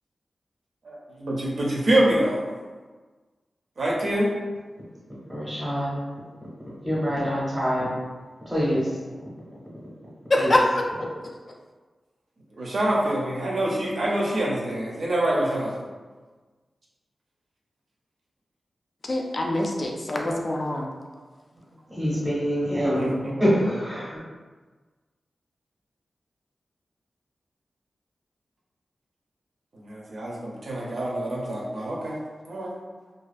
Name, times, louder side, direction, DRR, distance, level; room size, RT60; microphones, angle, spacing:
voice 1, 0.8-2.4 3.8-4.3 12.6-15.8 23.0-23.5 29.7-32.2 32.5-32.7, right 1 dB, 60° right, -4 dB, 0.5 m, -26 dB
voice 2, 5.3-6.0 6.8-7.9 8.5-8.9 10.4-10.5 22.0-24.1, equal, 10° right, -9 dB, 0.6 m, -25 dB
voice 3, 10.3-11.1 19.1-20.9, left 1 dB, 40° left, 0 dB, 0.3 m, -24 dB
2.3 x 2.3 x 2.5 m, 1.4 s
wide cardioid pair, 140°, 0 cm